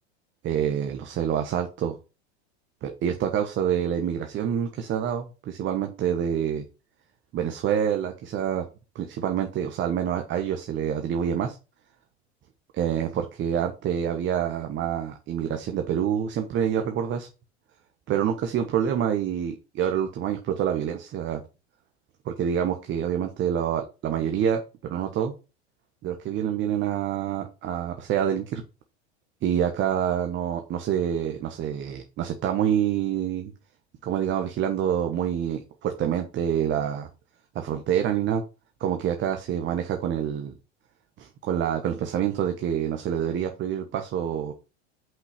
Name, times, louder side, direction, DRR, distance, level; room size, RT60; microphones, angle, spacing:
voice 1, 0.4-2.0 2.8-6.6 7.3-8.6 8.9-11.6 12.8-17.3 18.1-21.4 22.2-25.3 26.0-28.6 29.4-33.5 34.0-37.1 37.5-38.4 38.8-40.5 41.2-44.5, right 9 dB, 35° right, 5 dB, 1.2 m, -27 dB
5.8 x 5.6 x 5.9 m, 0.31 s
hypercardioid pair, 110°, 33 cm